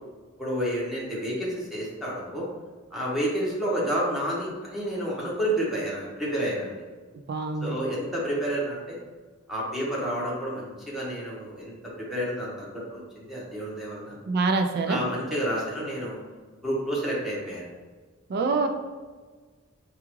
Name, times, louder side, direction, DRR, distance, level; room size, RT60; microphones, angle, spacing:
voice 1, 0.4-2.5 2.9-6.8 7.6-9.0 9.5-14.2 14.9-16.2 16.6-17.7, equal, ahead, -6 dB, 0.9 m, -30 dB
voice 2, 7.3-7.8 14.3-15.0 18.3-18.7, right 3 dB, 45° right, 4 dB, 0.3 m, -25 dB
4.7 x 2.4 x 3.0 m, 1.4 s
head